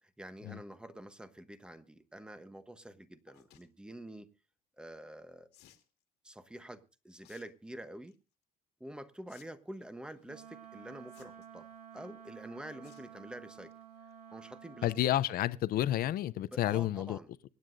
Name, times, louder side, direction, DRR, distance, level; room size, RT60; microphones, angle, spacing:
voice 1, 0.0-4.3 4.8-5.5 6.2-8.2 8.8-11.7 11.9-13.7 14.3-14.9 16.5-17.5, right 1 dB, 5° right, 1.0 m, -47 dB
sound 1, 3.3-3.7 5.5-5.9 7.2-7.4 7.8-8.1 9.3-9.4 9.7-9.8 11.1-11.6 12.8-13.1 13.5-13.7 14.1-14.2 14.4-14.5, left 12 dB, 85° left, 1.9 m, -61 dB
Wind instrument woodwind instrument, 10.2-15.1, right 9 dB, 75° right, 2.4 m, -52 dB
voice 2, 14.8-17.2, left 13 dB, 60° left, 0.6 m, -30 dB
25.0 x 9.5 x 2.6 m
cardioid pair, 110°, 17 cm